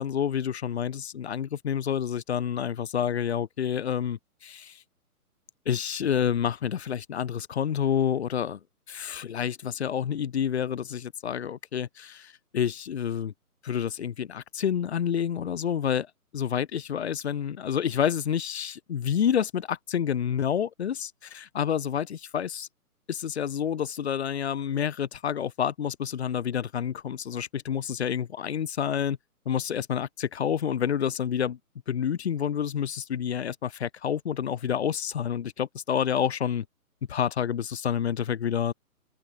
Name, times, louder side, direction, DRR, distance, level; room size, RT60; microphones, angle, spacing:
voice 1, 0.0-4.8 5.6-8.6 8.9-13.3 13.6-16.1 16.3-22.7 23.1-29.2 29.4-31.6 31.9-36.6 37.1-38.7, left 8 dB, 45° left, 3.3 m, -28 dB
open air
figure-of-eight pair, 140°, 46 cm